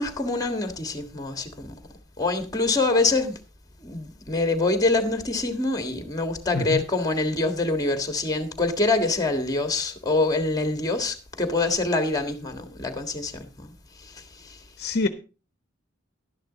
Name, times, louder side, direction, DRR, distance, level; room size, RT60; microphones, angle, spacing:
voice 1, 0.0-1.8 2.2-3.4 3.8-13.7 14.0-14.6, left 2 dB, 20° left, 1.6 m, -25 dB
voice 2, 14.8-15.1, left 3 dB, 50° left, 0.9 m, -25 dB
12.0 x 10.5 x 4.0 m
head